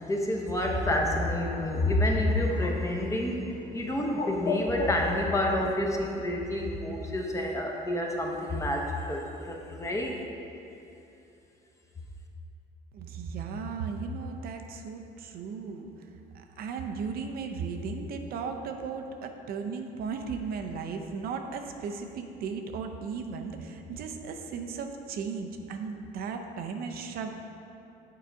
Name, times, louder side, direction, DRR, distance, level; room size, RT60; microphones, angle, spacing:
voice 1, 0.0-10.2, left 1 dB, 20° left, 0 dB, 0.8 m, -28 dB
Bird, 0.8-6.3, left 3 dB, 45° left, 0.7 m, -38 dB
voice 2, 12.9-16.1 16.3-27.3, right 5 dB, 65° right, 4 dB, 0.5 m, -36 dB
7.5 x 3.9 x 4.6 m, 2.8 s
cardioid pair, 110°, 17 cm